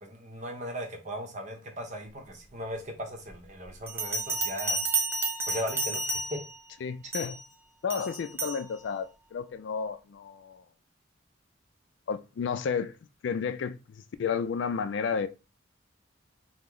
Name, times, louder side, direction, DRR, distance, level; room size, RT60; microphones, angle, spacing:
voice 1, 0.0-4.8 5.5-6.4, equal, 40° right, 0.7 m, -38 dB
Bell, 3.9-6.6 7.1-7.4 7.9-8.6, right 3 dB, 10° right, 0.4 m, -31 dB
voice 2, 6.8-7.4 7.8-10.6 12.1-12.9 13.2-15.3, left 6 dB, 65° left, 0.3 m, -32 dB
3.0 x 2.0 x 3.7 m
head